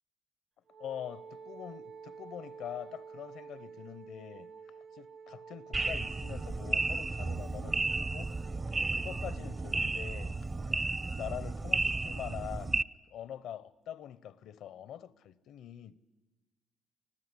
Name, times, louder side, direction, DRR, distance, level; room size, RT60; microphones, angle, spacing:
Wind instrument woodwind instrument, 0.7-10.7, right 6 dB, 55° right, 0.9 m, -51 dB
voice 1, 0.8-4.5 4.9-8.4 8.8-10.4 10.7-10.9 11.2-12.8 13.1-16.0, left 10 dB, 80° left, 0.8 m, -44 dB
sound 1, 5.7-12.8, right 3 dB, 25° right, 0.6 m, -33 dB
24.5 x 15.5 x 9.7 m
cardioid pair, 90°, 0 cm